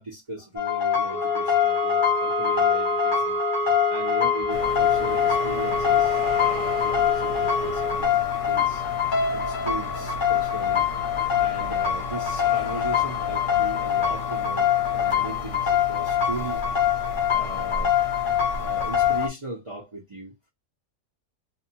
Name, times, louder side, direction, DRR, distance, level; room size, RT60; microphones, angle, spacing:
voice 1, 0.0-3.4 3.9-8.2 8.5-8.8 9.3-10.9 11.4-16.6 17.3-17.9 18.5-20.3, right 2 dB, 35° right, 0.5 m, -37 dB
sound 1, 0.6-19.3, left 9 dB, 45° left, 0.7 m, -24 dB
sound 2, 1.1-8.1, right 1 dB, 75° right, 1.0 m, -29 dB
sound 3, 4.5-19.3, left 3 dB, 90° left, 1.1 m, -36 dB
2.6 x 2.3 x 2.7 m
omnidirectional pair, 1.7 m